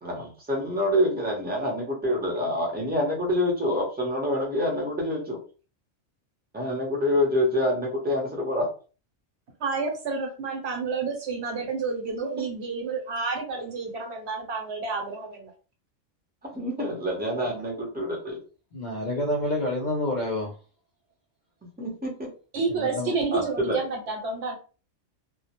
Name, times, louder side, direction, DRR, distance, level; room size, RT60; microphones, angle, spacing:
voice 1, 0.0-5.4 6.5-8.7 16.4-18.4 21.8-22.3 23.3-23.8, left 1 dB, 10° right, -2 dB, 0.5 m, -26 dB
voice 2, 9.6-15.5 22.5-24.5, right 4 dB, 65° right, 2 dB, 0.9 m, -30 dB
voice 3, 18.7-20.5 22.7-23.1, left 1 dB, 55° left, -2 dB, 0.5 m, -28 dB
2.2 x 2.0 x 2.8 m, 0.36 s
omnidirectional pair, 1.3 m